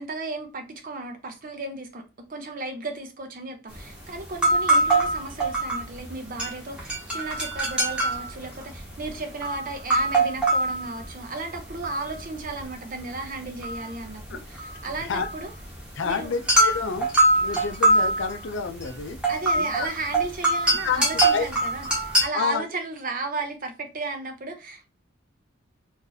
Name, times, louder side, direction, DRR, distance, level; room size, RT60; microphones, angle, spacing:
voice 1, 0.0-15.5 16.0-16.4 19.3-24.9, right 3 dB, 45° right, 0.7 m, -34 dB
sound 1, 3.7-3.8 4.1-6.1 6.4-12.7 13.0-22.3, right 2 dB, 5° right, 1.1 m, -23 dB
voice 2, 16.0-17.1 17.4-19.2 19.6-19.9 20.8-21.5 22.3-22.6, left 6 dB, 60° left, 0.5 m, -29 dB
2.7 x 2.6 x 3.9 m
head